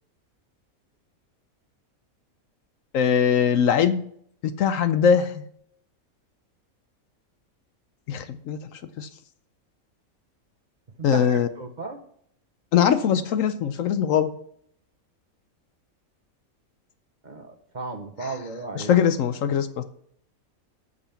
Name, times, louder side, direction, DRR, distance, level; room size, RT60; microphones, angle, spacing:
voice 1, 2.9-4.0 4.6-5.3 8.1-8.6 9.0-9.1 11.0-11.5 12.7-14.3 18.2-18.4 18.7-19.8, left 8 dB, 70° left, 11 dB, 1.0 m, -21 dB
voice 2, 11.0-12.0 17.2-18.9, right 3 dB, 35° right, 4 dB, 0.9 m, -35 dB
8.6 x 6.8 x 5.7 m, 0.66 s
omnidirectional pair, 1.5 m